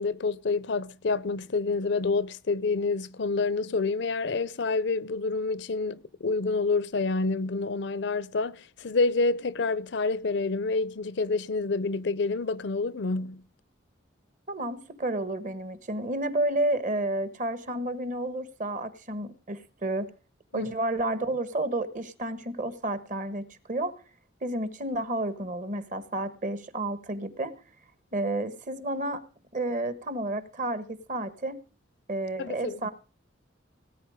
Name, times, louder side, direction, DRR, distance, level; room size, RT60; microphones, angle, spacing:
voice 1, 0.0-13.4 20.5-20.7 32.4-32.9, left 3 dB, 60° left, 0.6 m, -28 dB
voice 2, 14.5-20.1 20.5-23.9 24.4-27.5 28.1-29.2 29.5-31.6 32.1-32.9, right 1 dB, 40° right, 1.4 m, -31 dB
18.0 x 9.3 x 4.9 m
head